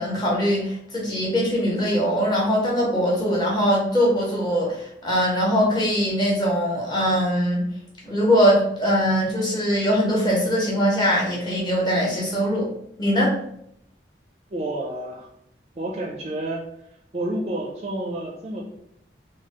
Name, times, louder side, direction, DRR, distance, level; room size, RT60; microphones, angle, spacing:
voice 1, 0.0-7.7 8.0-12.7 13.0-13.3, equal, 25° left, -4 dB, 1.0 m, -21 dB
voice 2, 14.5-15.3 15.8-16.6 17.1-18.6, right 1 dB, 35° right, 0 dB, 0.4 m, -29 dB
4.0 x 2.3 x 3.0 m, 0.72 s
head